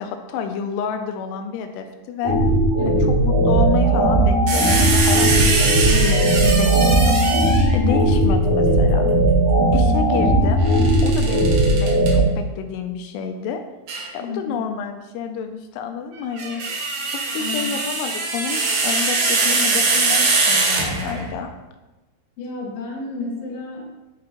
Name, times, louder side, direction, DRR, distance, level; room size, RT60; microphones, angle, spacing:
voice 1, 0.0-2.4 2.9-7.2 7.7-9.1 9.7-10.6 11.0-13.6 14.1-16.6 17.0-21.5, left 6 dB, 85° left, 6 dB, 2.7 m, -29 dB
sound 1, 2.2-12.2, right 1 dB, 55° right, 3.0 m, -17 dB
voice 2, 2.7-3.1 7.8-8.0 14.2-14.6 17.4-17.8 22.4-23.9, left 3 dB, 55° left, -4 dB, 2.0 m, -31 dB
sound 2, 4.5-7.8 10.7-12.1 13.9-14.1 16.2-21.3, right 3 dB, 75° right, 1.7 m, -22 dB
10.5 x 3.7 x 2.9 m, 1.1 s
omnidirectional pair, 4.8 m